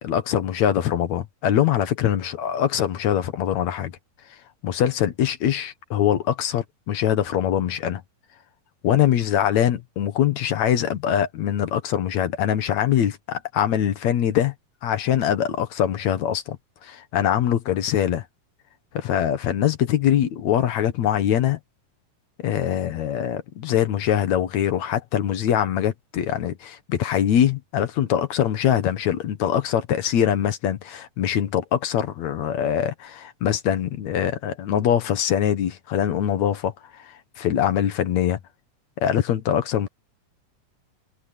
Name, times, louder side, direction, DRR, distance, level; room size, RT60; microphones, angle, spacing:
voice 1, 0.0-3.9 4.6-8.0 8.8-14.5 14.8-16.6 16.8-18.3 18.9-21.6 22.4-38.4 39.0-39.9, left 10 dB, 65° left, 2.4 m, -23 dB
omnidirectional pair, 3.8 m